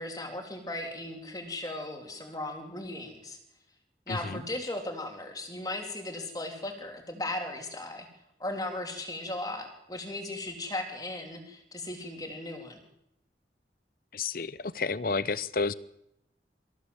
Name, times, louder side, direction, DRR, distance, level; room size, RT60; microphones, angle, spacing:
voice 1, 0.0-3.4 4.1-8.1 8.4-12.8, left 1 dB, 20° left, 3.5 m, -37 dB
voice 2, 4.1-4.4 14.1-15.7, left 4 dB, 50° left, 0.7 m, -31 dB
25.5 x 15.0 x 7.9 m
head